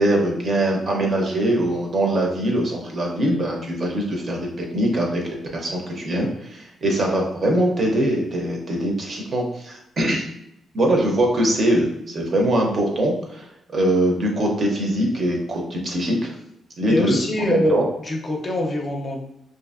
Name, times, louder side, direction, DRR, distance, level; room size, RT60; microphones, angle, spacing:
voice 1, 0.0-10.3 10.7-16.3 16.8-17.9, right 1 dB, 40° right, 0 dB, 0.6 m, -22 dB
voice 2, 16.9-17.8 18.0-19.2, left 2 dB, 35° left, 1 dB, 0.5 m, -23 dB
2.6 x 2.5 x 2.4 m, 0.80 s
cardioid pair, 130°, 0 cm